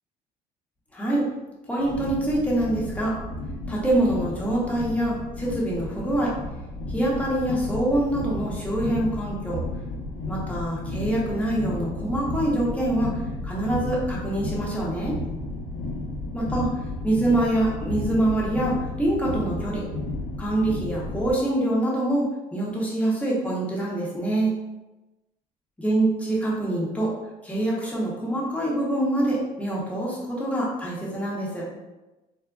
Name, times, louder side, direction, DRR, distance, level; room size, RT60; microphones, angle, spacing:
voice 1, 0.9-1.2 1.7-3.2 3.7-6.3 6.9-9.6 10.3-13.2 13.4-15.2 16.3-16.7 17.0-19.8 20.4-24.5 25.8-27.1 27.4-31.6, right 1 dB, 10° left, -5 dB, 0.9 m, -25 dB
sound 1, 1.8-21.3, left 2 dB, 70° left, 0.7 m, -33 dB
3.6 x 2.1 x 2.3 m, 1.1 s
cardioid pair, 110°, 17 cm